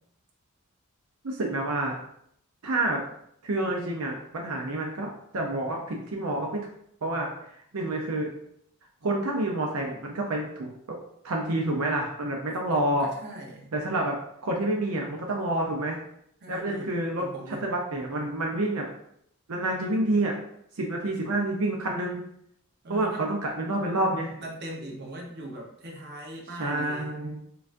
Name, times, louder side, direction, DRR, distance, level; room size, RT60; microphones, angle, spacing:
voice 1, 1.2-2.0 2.6-3.0 3.4-6.6 7.0-7.3 7.7-8.3 9.0-11.0 11.2-13.1 13.7-14.1 14.4-16.0 16.5-17.3 17.6-18.9 19.5-20.3 20.8-22.2 22.9-24.4 26.6-27.4, right 1 dB, 80° right, 0 dB, 0.7 m, -28 dB
voice 2, 13.0-13.7 16.4-17.7 22.8-23.3 24.4-27.2, right 1 dB, 50° right, -1 dB, 1.0 m, -40 dB
6.6 x 2.4 x 2.6 m, 0.71 s
head